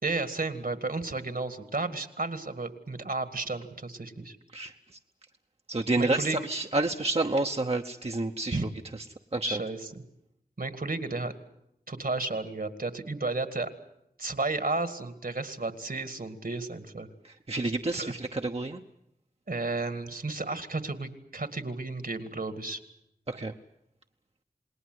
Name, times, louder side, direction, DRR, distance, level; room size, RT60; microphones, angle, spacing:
voice 1, 0.0-4.4 6.0-6.4 8.5-8.6 9.4-9.8 10.6-11.3 11.9-13.7 14.2-17.1 17.9-18.1 19.5-22.8, right 3 dB, 65° right, 10 dB, 2.1 m, -33 dB
voice 2, 5.7-8.6 8.9-9.0 9.3-9.6 17.2-18.8 23.3-23.5, right 2 dB, 40° right, 4 dB, 1.0 m, -29 dB
28.0 x 20.0 x 7.9 m, 0.80 s
wide cardioid pair, 45°, 16 cm